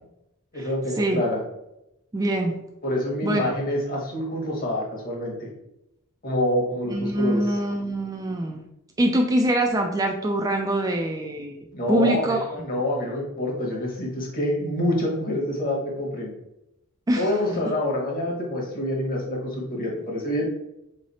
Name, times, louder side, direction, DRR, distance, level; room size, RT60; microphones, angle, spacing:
voice 1, 0.5-1.4 2.8-5.5 6.2-7.6 11.7-16.3 17.2-20.5, left 1 dB, 45° left, -1 dB, 1.2 m, -27 dB
voice 2, 2.1-2.6 3.2-3.6 6.9-8.6 9.0-12.4 17.1-17.4 17.6-17.7, right 1 dB, 15° right, 3 dB, 0.3 m, -24 dB
3.8 x 3.2 x 4.1 m, 0.87 s
head